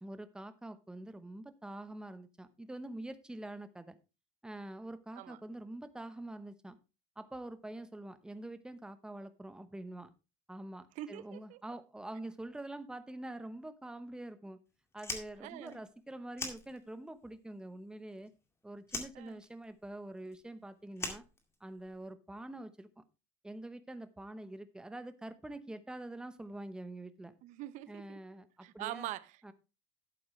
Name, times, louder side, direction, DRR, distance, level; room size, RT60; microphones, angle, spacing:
voice 1, 0.0-4.0 4.4-6.8 7.2-10.1 10.5-14.6 14.9-18.3 18.6-21.2 21.6-23.0 23.4-27.3 27.9-29.1 29.4-29.5, right 1 dB, 5° right, 0.9 m, -45 dB
voice 2, 10.9-11.6 15.4-15.8 19.1-19.4 27.4-28.2 28.6-29.5, right 15 dB, 60° right, 0.8 m, -44 dB
Fire, 14.9-17.2 17.5-18.5 18.8-22.0, left 3 dB, 20° left, 2.2 m, -43 dB
12.0 x 8.4 x 3.2 m
cardioid pair, 130°, 14 cm